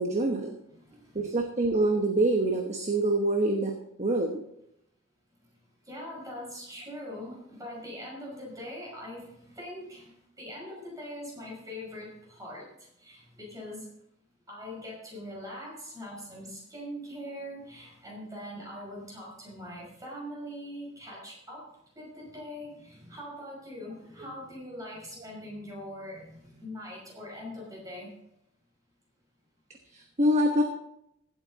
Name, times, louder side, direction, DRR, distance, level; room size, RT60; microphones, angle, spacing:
voice 1, 0.0-0.5 1.1-3.7 4.0-4.4 29.9-30.6, right 1 dB, 30° right, 3 dB, 1.1 m, -25 dB
voice 2, 0.7-1.4 5.9-10.1 10.4-12.7 13.0-13.9 14.5-21.7 22.0-28.1, left 1 dB, 15° right, -3 dB, 5.7 m, -42 dB
16.0 x 8.5 x 4.0 m, 0.77 s
head